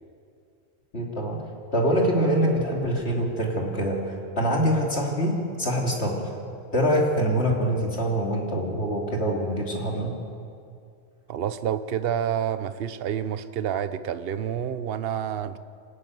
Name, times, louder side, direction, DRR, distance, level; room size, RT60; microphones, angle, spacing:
voice 1, 0.9-1.4 1.7-6.3 6.7-10.2, equal, 55° left, -1 dB, 3.2 m, -24 dB
voice 2, 11.3-15.6, right 9 dB, 55° right, 12 dB, 0.9 m, -28 dB
26.0 x 13.0 x 9.4 m, 2.4 s
omnidirectional pair, 1.3 m